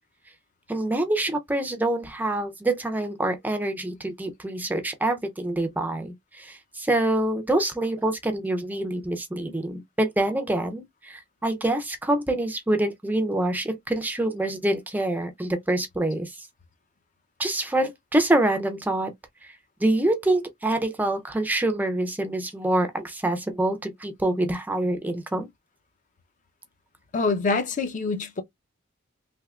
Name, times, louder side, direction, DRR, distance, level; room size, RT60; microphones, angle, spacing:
voice 1, 0.7-16.5 17.4-19.1 19.8-25.5, right 1 dB, 10° right, 0.4 m, -26 dB
voice 2, 27.1-28.4, left 3 dB, 40° left, 0.6 m, -25 dB
3.4 x 2.8 x 2.3 m
head